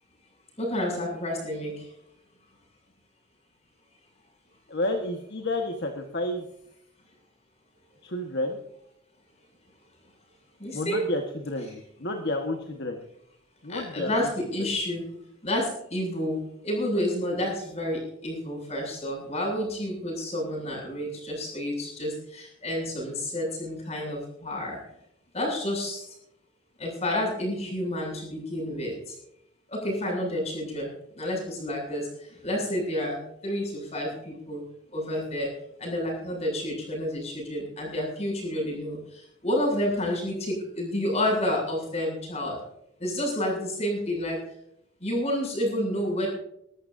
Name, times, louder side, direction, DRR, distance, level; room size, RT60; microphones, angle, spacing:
voice 1, 0.6-1.9 10.6-11.1 13.7-15.1 15.4-24.8 25.3-26.1 26.8-29.1 29.7-30.9 31.2-32.1 32.4-34.6 34.9-35.5 35.8-42.6 43.0-44.4 45.0-46.3, left 1 dB, 35° left, -1 dB, 7.2 m, -30 dB
voice 2, 4.7-6.5 8.0-8.6 10.7-13.0 13.6-14.3 14.6-14.7, left 1 dB, 55° left, 3 dB, 1.5 m, -30 dB
21.5 x 14.0 x 2.7 m, 0.77 s
head